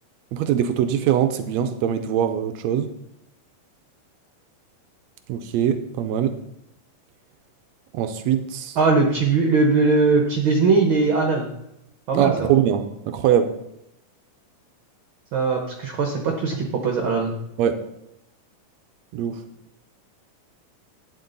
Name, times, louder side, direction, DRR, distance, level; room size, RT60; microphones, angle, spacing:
voice 1, 0.3-2.9 5.3-6.4 7.9-8.8 12.1-13.6 17.6-17.8 19.1-19.4, right 9 dB, 85° right, 8 dB, 1.5 m, -22 dB
voice 2, 8.8-11.5 12.1-12.5 15.3-17.3, right 4 dB, 70° right, 2 dB, 1.2 m, -20 dB
12.0 x 9.4 x 4.0 m, 0.86 s
omnidirectional pair, 3.8 m